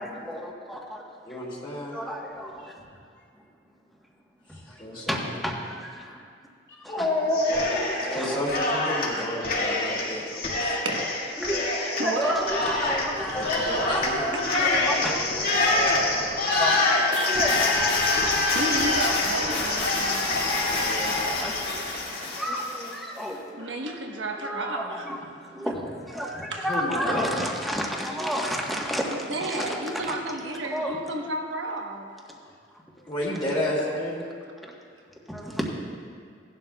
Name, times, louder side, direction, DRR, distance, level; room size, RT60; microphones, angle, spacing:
voice 1, 0.0-1.4 1.9-2.8 4.5-4.6 5.1-6.2 6.8-7.1 7.5-7.7 8.0-8.4 9.2-9.3 11.4-11.6 12.0-13.5 13.9-14.0 14.3-15.2 15.5-18.4 19.4-19.6 20.2-20.4 21.2-23.8 24.4-25.2 25.4-29.1 29.4-30.1 30.7-31.0 34.6-34.7 35.3-35.7, equal, ahead, -2 dB, 1.2 m, -32 dB
voice 2, 1.2-2.0 4.5-5.2 6.9-10.9 13.3-16.8 20.8-21.3 26.7-27.4 33.0-34.3, left 1 dB, 25° left, -4 dB, 2.2 m, -31 dB
Cheering, 7.3-8.2 8.5-22.9, left 2 dB, 55° left, 2.3 m, -26 dB
voice 3, 10.8-11.4 12.0-12.5 12.7-12.8 14.3-14.6 17.1-17.6 18.5-20.3 21.9-22.1 23.5-25.1 26.2-26.7 27.1-27.2 29.1-32.1, right 1 dB, 90° right, 2 dB, 1.2 m, -32 dB
sound 1, 13.1-14.8 16.6-19.1, left 3 dB, 75° left, 1.9 m, -31 dB
17.5 x 11.5 x 2.3 m, 2.2 s
head